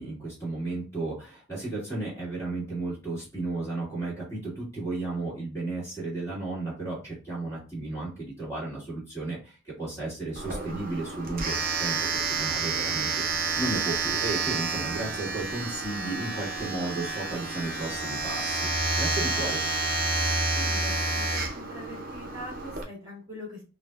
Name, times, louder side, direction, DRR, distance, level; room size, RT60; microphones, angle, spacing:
voice 1, 0.0-13.1 13.6-18.7 18.9-19.6, right 2 dB, 15° left, -7 dB, 1.8 m, -34 dB
Domestic sounds home sounds, 10.3-22.8, right 3 dB, 40° right, 0.6 m, -29 dB
voice 2, 20.5-23.6, left 1 dB, 20° right, -7 dB, 1.5 m, -42 dB
3.8 x 2.6 x 2.3 m, 0.34 s
head